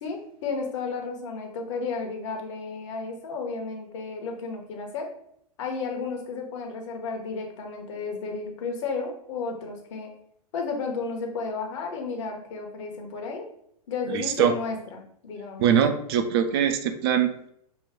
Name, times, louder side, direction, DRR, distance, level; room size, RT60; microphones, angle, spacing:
voice 1, 0.0-5.1 5.6-10.1 10.5-13.5 13.9-15.7, left 4 dB, 50° left, 3 dB, 1.1 m, -33 dB
voice 2, 14.1-14.5 15.6-17.5, right 8 dB, 40° right, 7 dB, 0.5 m, -23 dB
6.1 x 2.4 x 3.6 m, 0.70 s
figure-of-eight pair, 100°, 20 cm